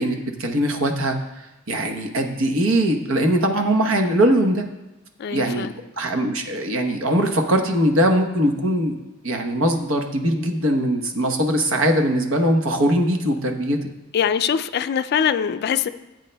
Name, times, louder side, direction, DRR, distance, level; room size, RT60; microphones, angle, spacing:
voice 1, 0.0-4.6 5.3-5.7 6.0-8.9 9.2-13.8, right 1 dB, 75° right, 4 dB, 1.0 m, -21 dB
voice 2, 5.2-5.7 14.1-15.9, left 8 dB, 50° left, 12 dB, 0.3 m, -22 dB
14.5 x 7.9 x 2.2 m, 0.98 s
head